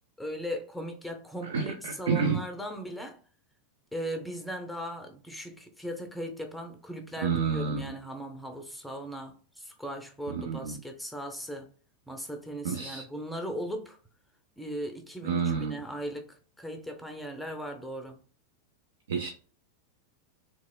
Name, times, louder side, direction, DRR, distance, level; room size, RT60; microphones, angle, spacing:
voice 1, 0.2-3.2 3.9-11.7 12.1-14.0 14.6-18.2, equal, 5° left, 0.5 m, -38 dB
voice 2, 1.4-2.4 7.2-7.8 10.3-10.8 12.6-13.0 15.2-15.8 19.1-19.3, right 6 dB, 60° right, 0.4 m, -29 dB
3.4 x 3.0 x 2.2 m
figure-of-eight pair, 90°, 0 cm